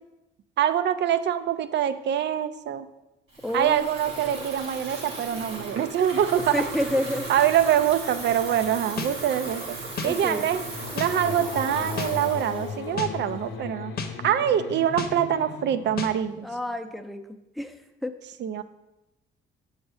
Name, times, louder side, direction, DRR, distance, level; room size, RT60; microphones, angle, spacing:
voice 1, 0.6-2.9 3.5-6.6 7.3-9.8 10.0-10.6 10.9-13.9 14.2-16.5 18.4-18.6, right 10 dB, 60° right, 12 dB, 0.5 m, -24 dB
Water tap faucet / Fill (with liquid), 3.3-13.6, right 2 dB, 85° right, 1.8 m, -37 dB
voice 2, 3.4-3.9 4.3-4.4 6.5-7.3 10.0-10.5 16.4-17.2 17.6-18.1, left 1 dB, ahead, 8 dB, 0.5 m, -29 dB
sound 1, 9.0-9.1 10.0-10.1 11.0-11.1 12.0-12.1 13.0-13.1 14.0-14.1 15.0-15.1 16.0-16.1, left 5 dB, 50° left, 0.8 m, -31 dB
sound 2, 9.6-16.9, left 6 dB, 90° left, 0.6 m, -38 dB
7.1 x 4.1 x 4.8 m, 0.98 s
cardioid pair, 90°, 20 cm